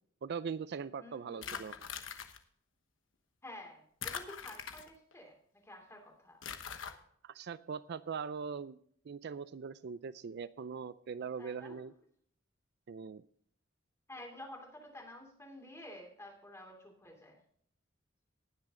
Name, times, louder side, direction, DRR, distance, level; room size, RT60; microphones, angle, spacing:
voice 1, 0.2-1.7 7.2-8.8 9.0-11.9 12.9-13.2, right 6 dB, 60° right, 15 dB, 0.4 m, -41 dB
voice 2, 1.0-2.0 3.4-6.4 11.4-11.8 14.1-17.4, left 1 dB, 15° left, 1 dB, 3.0 m, -51 dB
sound 1, 1.4-2.4 4.0-5.1 6.4-6.9, left 7 dB, 80° left, 1.1 m, -42 dB
19.0 x 6.5 x 3.7 m, 0.63 s
head